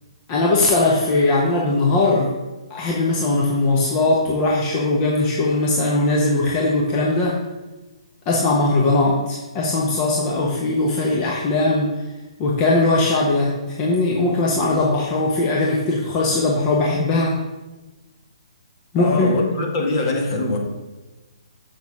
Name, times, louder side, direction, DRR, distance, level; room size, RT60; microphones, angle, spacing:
voice 1, 0.3-2.3 2.7-7.4 8.3-12.0 12.4-17.4 18.9-19.4, left 2 dB, 30° left, -3 dB, 1.1 m, -20 dB
voice 2, 19.0-20.6, left 2 dB, 45° left, 1 dB, 1.9 m, -23 dB
7.1 x 6.4 x 4.9 m, 1.1 s
hypercardioid pair, 140°, 3 cm